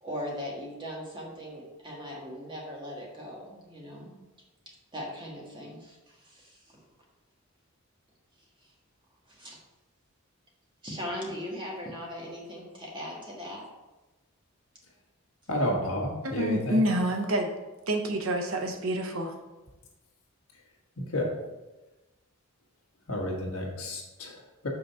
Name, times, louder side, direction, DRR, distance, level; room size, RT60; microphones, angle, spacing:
voice 1, 0.0-4.1 4.9-6.8 8.6-8.7 9.3-9.6 10.8-13.7, equal, 20° right, -2 dB, 1.5 m, -39 dB
voice 2, 15.5-16.8 21.0-21.3 23.1-24.7, equal, 65° left, -2 dB, 1.5 m, -31 dB
voice 3, 16.2-17.5 17.9-19.4, equal, 65° right, 4 dB, 0.8 m, -27 dB
5.7 x 3.9 x 5.5 m, 1.1 s
head